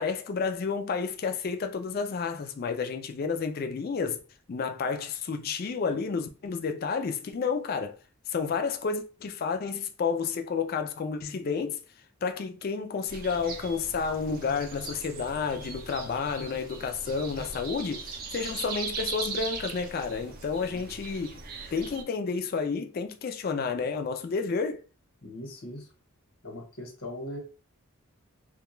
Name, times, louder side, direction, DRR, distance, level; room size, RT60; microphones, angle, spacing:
voice 1, 0.0-4.2 4.5-8.0 8.3-11.8 12.2-21.4 21.7-24.8, left 5 dB, 40° left, 0.3 m, -31 dB
sound 1, 13.1-22.0, right 4 dB, 40° right, 0.4 m, -39 dB
voice 2, 25.2-25.9 26.4-27.4, left 1 dB, 70° left, 1.0 m, -40 dB
2.3 x 2.2 x 3.0 m
head